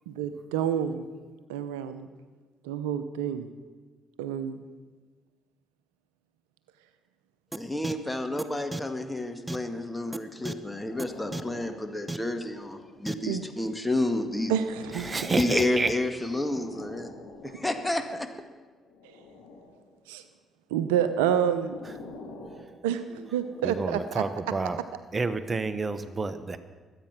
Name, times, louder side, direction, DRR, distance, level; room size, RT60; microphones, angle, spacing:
voice 1, 0.1-1.1 1.5-2.1 2.6-3.5 4.2-4.6 13.3-13.5 14.5-15.3 20.1-20.2 20.7-21.8 22.8-24.2, right 9 dB, 85° right, 11 dB, 0.7 m, -28 dB
sound 1, 7.5-7.6 7.8-7.9 8.4-8.5 8.7-8.8 9.5-9.6 10.1-10.2 10.5-10.6 11.0-11.1 11.3-11.4 12.1-12.2 13.1-13.2, right 2 dB, 15° right, 0.9 m, -33 dB
voice 2, 7.6-14.5 15.3-17.1 17.4-18.3, left 1 dB, 10° left, 6 dB, 2.0 m, -30 dB
sound 2, 10.1-13.2 13.9-18.1 18.8-19.9 20.8-24.1 24.8-25.0, left 3 dB, 80° left, 3.2 m, -48 dB
voice 3, 14.9-15.9 22.4-22.5 23.6-24.8 25.1-26.6, right 3 dB, 35° right, 12 dB, 1.1 m, -29 dB
23.0 x 8.9 x 6.0 m, 1.4 s
hypercardioid pair, 50°, 0 cm